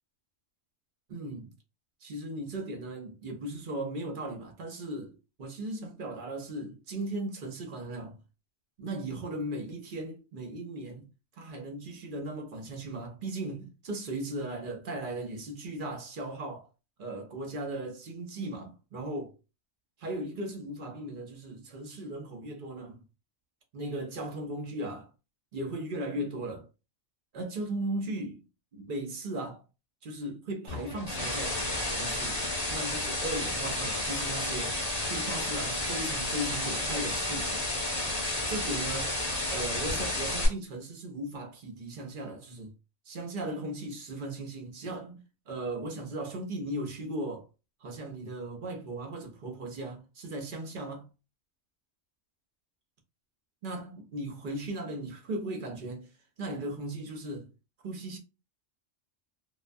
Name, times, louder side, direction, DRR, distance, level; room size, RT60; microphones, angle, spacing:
voice 1, 1.1-1.5 2.0-8.2 8.8-11.1 11.4-16.7 17.0-19.4 20.0-23.0 23.7-25.1 25.5-26.7 27.3-28.4 28.7-29.6 30.0-31.6 31.9-32.4 32.7-34.8 35.1-37.6 38.5-39.1 39.5-42.7 43.1-47.5 47.8-51.1 53.6-56.1 56.4-57.5 57.8-58.2, right 1 dB, 55° right, 0.7 m, -37 dB
sound 1, 30.7-40.5, left 1 dB, 30° left, 0.8 m, -31 dB
2.2 x 2.2 x 2.5 m
omnidirectional pair, 1.2 m